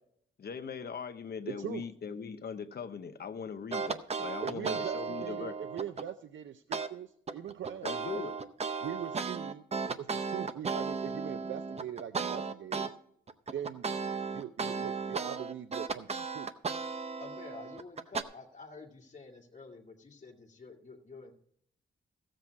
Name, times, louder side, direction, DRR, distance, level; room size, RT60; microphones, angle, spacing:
voice 1, 0.4-5.6 7.8-8.3, left 6 dB, 55° left, 9 dB, 0.9 m, -40 dB
voice 2, 1.5-1.8 4.4-8.2 8.8-9.6 10.0-12.9 13.5-16.5, right 9 dB, 75° right, 10 dB, 0.6 m, -41 dB
sound 1, 3.7-6.1 6.7-6.9 7.3-12.9 13.3-18.2, right 5 dB, 30° right, 0.7 m, -35 dB
voice 3, 17.2-21.3, left 3 dB, 35° left, 0 dB, 2.1 m, -49 dB
15.0 x 7.6 x 4.7 m, 0.66 s
wide cardioid pair, 150°, 20 cm